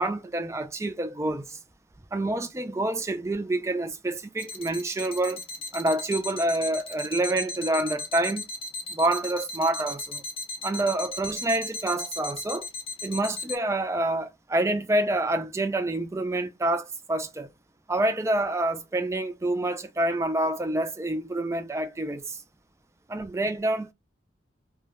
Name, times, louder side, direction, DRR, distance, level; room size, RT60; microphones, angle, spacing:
voice 1, 0.0-1.6 2.1-5.4 5.7-8.5 8.9-10.2 10.6-12.7 13.0-17.5 17.9-22.4 23.1-23.9, right 1 dB, 15° right, 0.4 m, -27 dB
sound 1, 4.4-13.6, left 2 dB, 30° left, 0.7 m, -35 dB
2.7 x 2.2 x 3.3 m
head